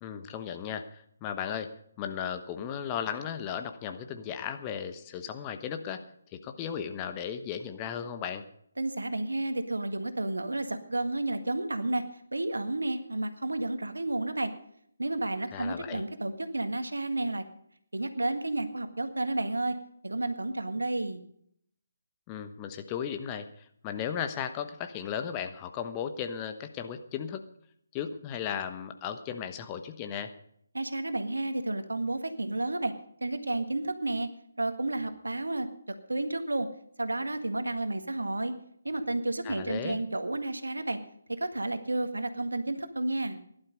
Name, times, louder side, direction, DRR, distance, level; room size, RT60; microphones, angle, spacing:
voice 1, 0.0-1.7 2.0-6.0 6.4-8.4 15.5-16.0 22.3-27.4 27.9-30.3 39.4-40.0, left 8 dB, 20° left, 7 dB, 1.0 m, -36 dB
voice 2, 8.8-12.0 12.3-14.5 15.0-17.4 17.9-19.8 20.0-21.2 30.7-32.9 33.2-34.3 34.6-36.7 37.0-38.5 38.9-41.0 41.3-43.4, right 2 dB, 70° right, 9 dB, 1.7 m, -31 dB
17.5 x 11.5 x 5.3 m, 0.68 s
figure-of-eight pair, 145°, 0 cm